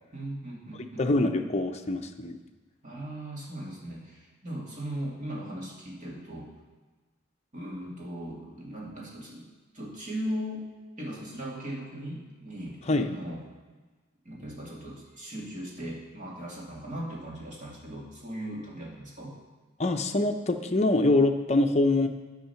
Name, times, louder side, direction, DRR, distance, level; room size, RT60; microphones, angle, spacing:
voice 1, 0.1-1.1 2.8-6.5 7.5-9.5 9.7-10.7 11.0-13.4 14.2-19.3, equal, 40° right, -3 dB, 2.4 m, -38 dB
voice 2, 1.0-2.4 12.9-13.1 19.8-22.1, left 2 dB, 35° left, 5 dB, 0.7 m, -24 dB
10.0 x 6.4 x 5.8 m, 1.3 s
head